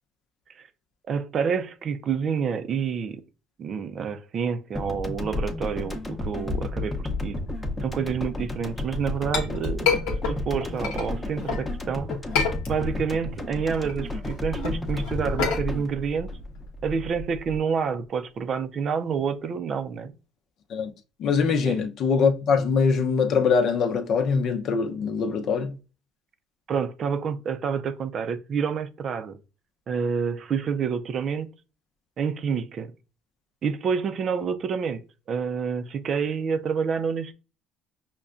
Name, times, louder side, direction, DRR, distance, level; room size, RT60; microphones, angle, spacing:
voice 1, 1.1-3.2 3.6-7.4 7.8-12.1 12.7-16.3 16.8-20.1 21.6-21.8 26.7-29.4 29.9-31.5 32.2-32.9 33.6-37.3, right 6 dB, 50° right, 0.5 m, -28 dB
sound 1, 4.8-17.2, left 2 dB, 15° left, 0.7 m, -32 dB
Chink clink, 8.8-11.7 12.1-13.1 13.5-17.6, left 5 dB, 85° left, 0.9 m, -29 dB
voice 2, 21.2-25.7, left 5 dB, 60° left, 0.7 m, -23 dB
5.5 x 2.2 x 2.4 m
supercardioid pair, 95°, 0 cm